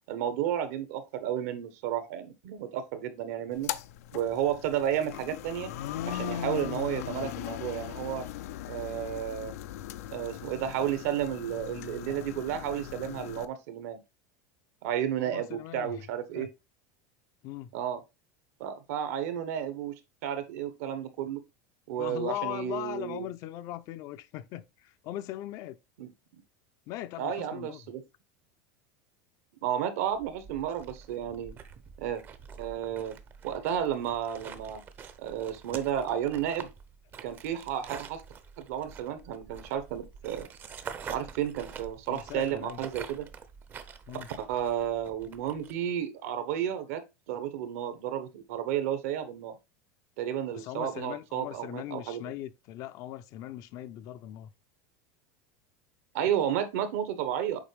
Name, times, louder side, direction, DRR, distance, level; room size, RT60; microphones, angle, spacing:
voice 1, 0.1-3.7 4.1-5.7 6.0-8.2 8.7-9.5 10.1-14.0 14.8-16.5 17.7-18.0 18.6-21.4 21.9-23.3 26.0-26.1 27.2-28.0 29.6-31.6 32.0-32.2 32.6-33.2 33.4-34.8 35.2-36.7 37.2-38.2 38.6-40.5 41.0-43.3 44.4-47.0 47.3-49.5 50.2-52.2 56.1-57.6, right 10 dB, 70° right, 1.2 m, -32 dB
sound 1, 3.5-13.4, left 12 dB, 90° left, 0.6 m, -39 dB
voice 2, 15.2-16.0 16.4-16.5 17.4-17.7 22.0-25.8 26.9-27.8 42.1-42.8 44.1-44.3 50.5-54.5, left 13 dB, 45° left, 0.5 m, -39 dB
sound 2, 30.1-45.7, right 6 dB, 25° right, 0.6 m, -46 dB
7.3 x 4.5 x 3.3 m
supercardioid pair, 160°, 8 cm